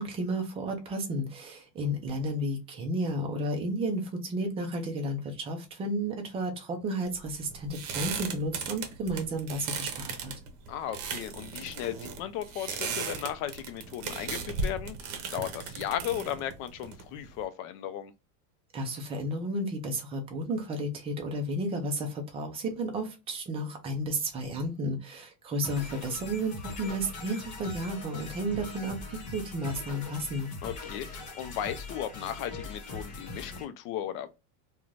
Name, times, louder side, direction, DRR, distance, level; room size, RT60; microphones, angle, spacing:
voice 1, 0.0-10.3 18.7-30.5, right 1 dB, 15° right, 0.3 m, -32 dB
sound 1, 7.0-17.4, right 5 dB, 55° right, 0.8 m, -37 dB
voice 2, 10.7-15.0 15.3-18.1 25.9-26.0 30.6-34.3, left 11 dB, 55° left, 0.6 m, -36 dB
sound 2, 25.6-33.6, left 3 dB, 40° left, 1.1 m, -41 dB
2.5 x 2.3 x 3.0 m
supercardioid pair, 150°, 44 cm